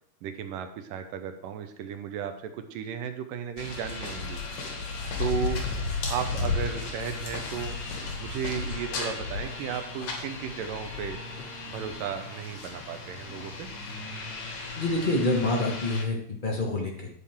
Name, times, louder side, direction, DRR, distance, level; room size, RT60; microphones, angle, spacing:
voice 1, 0.2-4.4 5.2-5.6 6.1-7.8 8.2-11.2 11.7-13.7, right 8 dB, 90° right, 7 dB, 2.6 m, -34 dB
sound 1, 3.6-16.0, left 4 dB, 90° left, 3.7 m, -34 dB
voice 2, 14.8-17.1, left 2 dB, 65° left, -1 dB, 0.4 m, -27 dB
10.5 x 8.7 x 3.7 m, 0.67 s
omnidirectional pair, 3.8 m